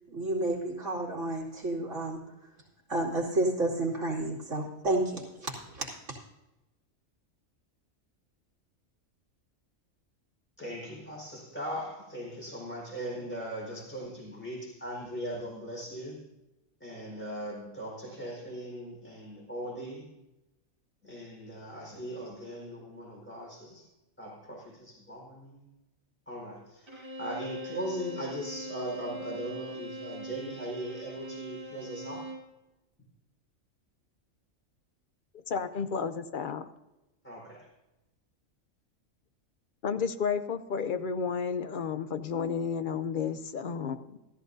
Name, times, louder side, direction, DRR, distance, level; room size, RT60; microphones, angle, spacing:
voice 1, 0.1-2.2 2.9-6.2, right 2 dB, 65° right, -4 dB, 3.1 m, -31 dB
voice 2, 10.6-16.2 16.8-20.1 21.0-23.9 24.2-25.6 26.3-32.2 37.2-37.7, equal, 10° left, -3 dB, 4.5 m, -39 dB
Bowed string instrument, 26.9-32.5, equal, 20° right, 2.1 m, -41 dB
voice 3, 35.5-36.7 39.8-44.2, left 6 dB, 55° left, 10 dB, 0.6 m, -32 dB
14.0 x 14.0 x 2.7 m, 0.98 s
omnidirectional pair, 1.4 m